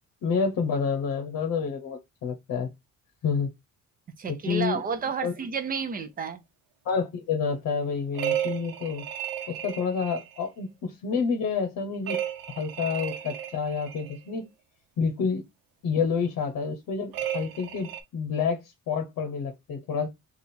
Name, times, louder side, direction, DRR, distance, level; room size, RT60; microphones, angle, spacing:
voice 1, 0.2-2.7 3.2-3.5 4.3-4.8 5.2-5.3 6.8-9.0 9.5-12.2 12.5-14.5 15.0-15.4 15.8-18.6 18.9-20.1, left 5 dB, 55° left, 0.9 m, -28 dB
voice 2, 4.2-6.4, right 5 dB, 25° right, 0.5 m, -31 dB
sound 1, 8.1-10.4 12.1-14.2 17.1-18.0, right 10 dB, 85° right, 0.8 m, -33 dB
3.4 x 2.4 x 4.2 m
cardioid pair, 165°, 34 cm